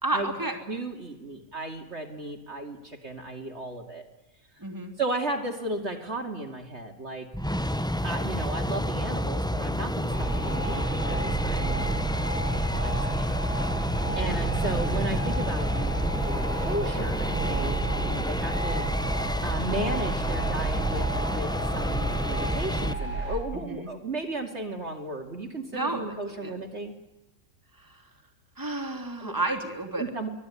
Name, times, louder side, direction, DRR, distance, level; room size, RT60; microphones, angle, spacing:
voice 1, 0.0-0.6 4.6-4.9 14.1-14.4 23.5-23.9 25.7-26.0 26.4-26.5 27.8-28.0 28.6-30.0, right 2 dB, 15° right, 4 dB, 2.9 m, -31 dB
voice 2, 0.7-4.0 5.0-7.3 8.0-11.9 12.4-13.3 14.1-18.9 19.4-26.9 29.2-29.3 30.0-30.3, right 2 dB, 45° right, 3 dB, 2.8 m, -35 dB
sound 1, 7.3-22.9, equal, 5° left, 0.5 m, -29 dB
sound 2, 10.1-23.4, right 3 dB, 70° left, 6.7 m, -32 dB
24.0 x 18.0 x 9.8 m, 1.0 s
omnidirectional pair, 1.6 m